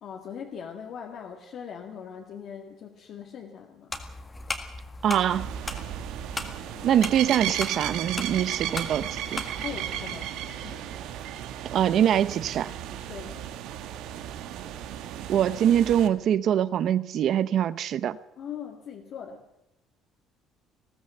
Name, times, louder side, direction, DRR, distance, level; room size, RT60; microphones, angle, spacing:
voice 1, 0.0-3.9 6.7-7.0 9.6-10.9 13.1-13.5 18.4-19.5, left 7 dB, 45° left, 2.0 m, -41 dB
sound 1, 3.9-9.9, left 2 dB, 15° left, 1.7 m, -38 dB
voice 2, 5.0-5.5 6.8-9.4 11.6-12.7 15.3-18.2, right 10 dB, 45° right, 0.7 m, -23 dB
sound 2, 5.3-16.1, right 11 dB, 70° right, 1.7 m, -35 dB
20.0 x 16.5 x 7.9 m
cardioid pair, 175°, 0 cm